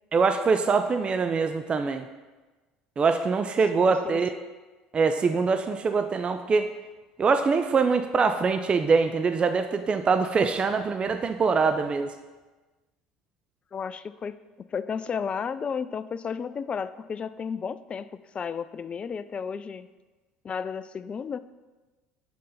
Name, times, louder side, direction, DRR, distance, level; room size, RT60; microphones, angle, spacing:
voice 1, 0.1-2.1 3.0-4.3 4.9-6.7 7.2-12.1, right 4 dB, 30° right, 8 dB, 0.4 m, -23 dB
voice 2, 3.8-4.2 13.7-14.4 14.7-18.1 18.3-19.9 20.4-21.4, left 6 dB, 35° left, 14 dB, 0.3 m, -33 dB
5.4 x 5.2 x 5.7 m, 1.2 s
hypercardioid pair, 75°, 3 cm